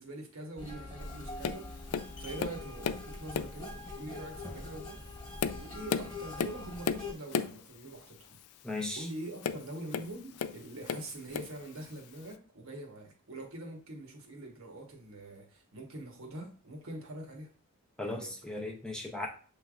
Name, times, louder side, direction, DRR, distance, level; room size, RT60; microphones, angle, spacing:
voice 1, 0.0-5.3 5.5-8.4 9.0-17.5 18.0-18.3, right 1 dB, 65° right, 2 dB, 1.1 m, -44 dB
sound 1, 0.6-7.1, left 2 dB, 20° left, 1.3 m, -43 dB
Tap, 1.4-1.7 1.9-3.1 3.3-3.7 4.3-4.5 5.1-7.6 9.4-10.6 10.9-11.6 12.3-12.4, left 6 dB, 80° left, 0.4 m, -34 dB
voice 2, 8.6-9.1 18.0-19.3, left 2 dB, 5° left, 0 dB, 0.6 m, -37 dB
6.8 x 3.3 x 2.4 m, 0.40 s
head